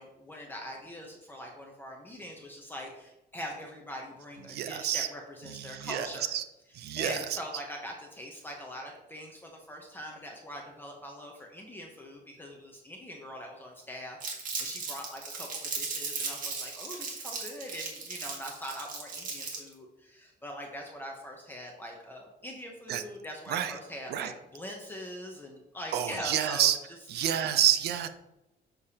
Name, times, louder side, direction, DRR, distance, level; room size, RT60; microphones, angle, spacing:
voice 1, 0.0-6.3 7.0-26.7 27.4-27.5, equal, 10° left, 0 dB, 0.8 m, -42 dB
voice 2, 4.5-5.1 5.5-6.4 6.7-7.4 22.9-23.0 23.5-23.8 24.1-24.3 25.9-26.8 27.1-28.1, right 10 dB, 65° right, 10 dB, 0.6 m, -29 dB
Crumpling crinkling, 14.2-19.7, right 4 dB, 50° right, 1.7 m, -37 dB
6.8 x 6.4 x 2.8 m, 0.92 s
cardioid pair, 160°, 18 cm